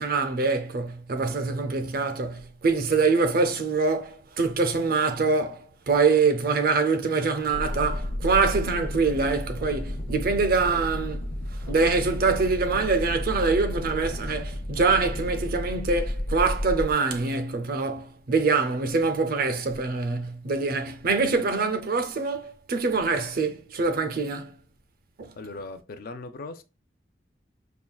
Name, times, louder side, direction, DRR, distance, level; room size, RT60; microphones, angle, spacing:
voice 1, 0.0-11.2 11.7-24.6 25.2-25.3, right 4 dB, 55° right, 0.5 m, -24 dB
sound 1, 7.5-16.9, left 1 dB, 85° left, 0.9 m, -32 dB
voice 2, 25.4-26.6, left 3 dB, 55° left, 0.4 m, -38 dB
5.3 x 2.3 x 2.3 m
head